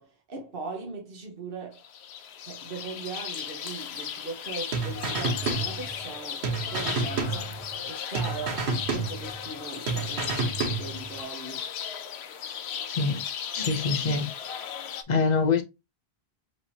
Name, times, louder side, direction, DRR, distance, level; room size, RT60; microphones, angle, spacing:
voice 1, 0.0-1.8 2.4-8.6 8.9-11.7, right 4 dB, 60° right, 1.4 m, -40 dB
sound 1, 1.7-15.0, left 8 dB, 90° left, 0.9 m, -36 dB
sound 2, 4.7-6.2 6.4-7.9 8.1-9.6 9.9-11.2, right 4 dB, 90° right, 1.4 m, -30 dB
voice 2, 12.9-13.2 13.5-14.3 15.1-15.6, left 4 dB, 45° left, 0.9 m, -25 dB
4.9 x 3.6 x 2.8 m
omnidirectional pair, 1.0 m